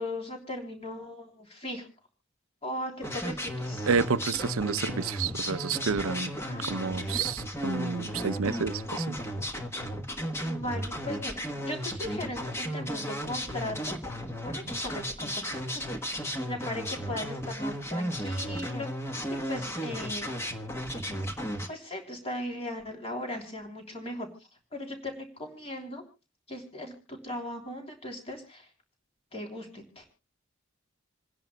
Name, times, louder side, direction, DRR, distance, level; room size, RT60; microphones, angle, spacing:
voice 1, 0.0-1.9 2.6-3.9 6.4-6.9 10.4-15.8 16.5-18.9 19.3-20.5 21.7-24.3 24.7-26.0 26.5-28.7 29.3-30.0, left 1 dB, 30° left, 3.3 m, -38 dB
sound 1, 3.0-21.7, equal, 10° left, 1.2 m, -34 dB
voice 2, 3.9-6.3 6.7-9.2, right 5 dB, 85° right, 0.6 m, -29 dB
28.5 x 10.5 x 2.2 m
head